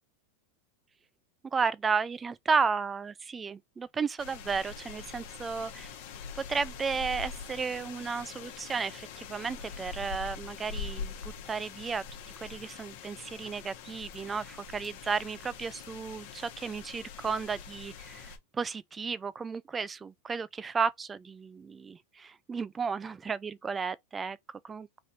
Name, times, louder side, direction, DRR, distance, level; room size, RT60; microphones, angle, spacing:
voice 1, 1.5-5.9 6.4-12.0 12.4-25.0, right 5 dB, 15° right, 0.3 m, -33 dB
sound 1, 4.2-18.4, left 6 dB, 55° left, 1.0 m, -43 dB
3.2 x 2.6 x 4.2 m
supercardioid pair, 145°, 0 cm